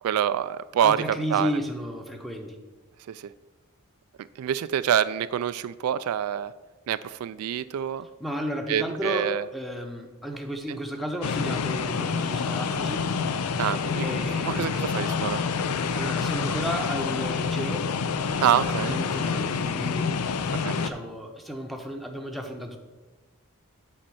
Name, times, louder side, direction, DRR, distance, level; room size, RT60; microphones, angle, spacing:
voice 1, 0.0-1.0 1.3-1.5 3.1-3.3 4.4-6.5 6.9-8.1 8.7-9.4 13.6-14.1 14.4-15.4 18.4-19.0 20.6-20.9, right 9 dB, 70° right, 15 dB, 0.3 m, -26 dB
voice 2, 0.8-2.6 8.2-13.1 14.0-14.8 15.9-17.9 18.9-20.3 20.6-22.8, equal, ahead, 4 dB, 0.8 m, -33 dB
sound 1, 11.2-20.9, left 5 dB, 80° left, 0.5 m, -27 dB
7.8 x 4.3 x 7.0 m, 1.2 s
head